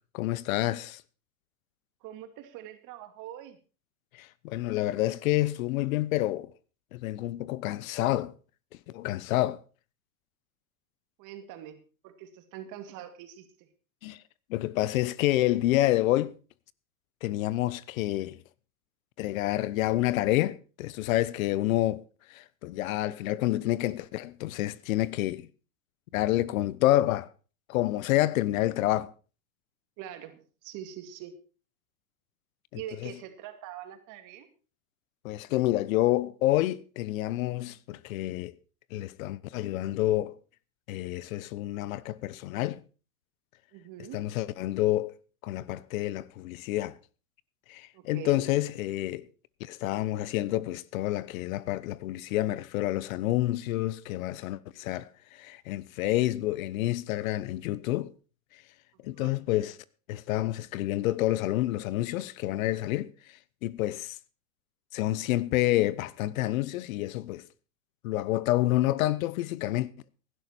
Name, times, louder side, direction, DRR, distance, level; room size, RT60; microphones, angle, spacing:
voice 1, 0.1-1.0 4.1-6.5 6.9-8.3 8.9-9.6 14.0-14.2 14.5-16.3 17.2-18.4 19.2-22.0 22.3-25.5 26.1-27.3 27.7-29.1 32.7-33.1 35.2-38.5 38.9-40.3 40.9-42.8 44.1-45.1 45.4-46.9 47.7-49.3 49.6-58.1 59.0-59.8 60.1-63.1 63.6-64.2 64.9-67.4 68.0-69.9, left 15 dB, 65° left, 1.0 m, -28 dB
voice 2, 2.0-3.6 11.2-13.5 30.0-31.3 32.7-34.5 43.7-44.2 47.9-48.5 59.1-59.3, right 11 dB, 45° right, 2.4 m, -43 dB
16.5 x 11.5 x 4.4 m
hypercardioid pair, 125°, 44 cm